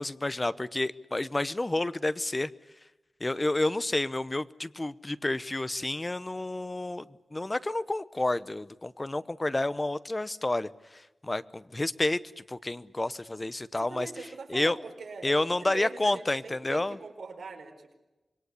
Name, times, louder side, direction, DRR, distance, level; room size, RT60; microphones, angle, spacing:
voice 1, 0.0-2.5 3.2-7.0 7.3-14.1 14.5-14.8 15.2-17.0, left 2 dB, 20° left, 15 dB, 0.8 m, -30 dB
voice 2, 13.8-17.9, right 4 dB, 90° right, 4 dB, 4.8 m, -42 dB
26.5 x 22.0 x 8.3 m, 1.0 s
wide cardioid pair, 125°, 0 cm